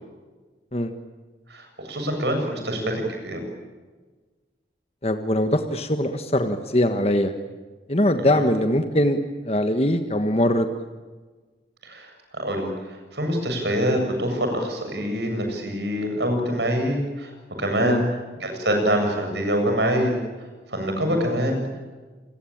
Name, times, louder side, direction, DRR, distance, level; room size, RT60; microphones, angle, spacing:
voice 1, 1.5-3.4 8.2-8.4 11.8-17.3 17.6-18.0 18.4-20.1 20.7-21.6, equal, 65° right, 4 dB, 7.8 m, -25 dB
voice 2, 5.0-7.3 7.9-9.2 9.4-10.7 17.8-18.0 21.1-21.2, left 1 dB, 35° left, 7 dB, 1.4 m, -22 dB
28.5 x 21.0 x 8.9 m, 1.3 s
head